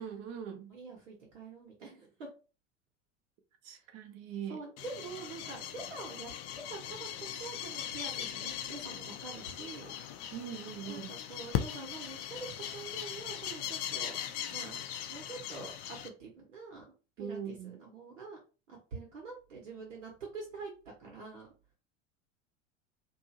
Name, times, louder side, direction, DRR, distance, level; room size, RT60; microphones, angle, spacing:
voice 1, 0.0-0.7 3.6-4.6 10.3-11.1 17.2-17.8, right 8 dB, 45° right, 0.7 m, -41 dB
voice 2, 0.7-2.3 3.7-3.9 4.5-10.2 10.9-14.2 14.5-16.8 17.2-18.4 18.7-20.7 21.0-21.5, right 4 dB, 75° right, 1.1 m, -46 dB
sound 1, 4.8-16.1, left 10 dB, 40° left, 0.5 m, -39 dB
2.7 x 2.4 x 2.8 m
figure-of-eight pair, 75°, 37 cm